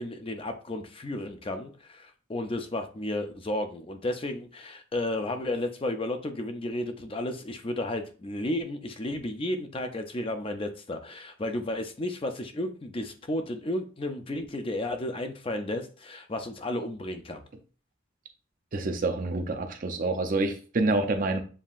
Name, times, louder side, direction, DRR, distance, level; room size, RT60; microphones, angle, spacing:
voice 1, 0.0-17.4, left 1 dB, 25° left, 6 dB, 0.4 m, -33 dB
voice 2, 18.7-21.4, right 2 dB, 40° right, 6 dB, 0.5 m, -27 dB
7.2 x 2.7 x 2.4 m, 0.37 s
head